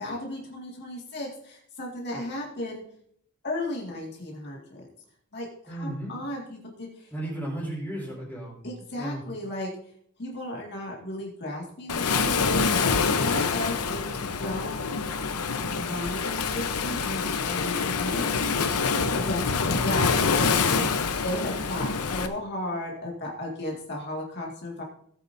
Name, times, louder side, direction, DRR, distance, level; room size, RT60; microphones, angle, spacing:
voice 1, 0.0-2.8 3.4-4.6 5.3-7.1 8.6-9.7 10.2-14.8 15.7-18.3 19.0-24.8, left 1 dB, 50° left, -2 dB, 2.1 m, -35 dB
voice 2, 5.7-6.1 7.1-8.7 8.9-9.2 19.5-20.0, right 1 dB, 10° left, -4 dB, 4.8 m, -35 dB
Waves surf, 11.9-22.3, left 5 dB, 85° left, 0.9 m, -26 dB
16.5 x 8.9 x 2.7 m, 0.67 s
head